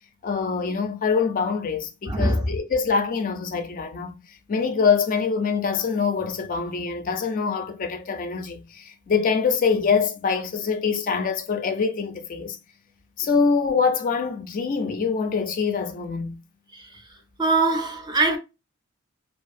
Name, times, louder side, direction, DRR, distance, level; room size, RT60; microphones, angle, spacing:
voice 1, 0.2-12.6 13.2-16.4, left 5 dB, 40° left, 0.4 m, -24 dB
voice 2, 2.1-2.5 16.7-17.0 17.4-18.4, right 2 dB, 20° right, 0.4 m, -22 dB
2.7 x 2.4 x 2.4 m
head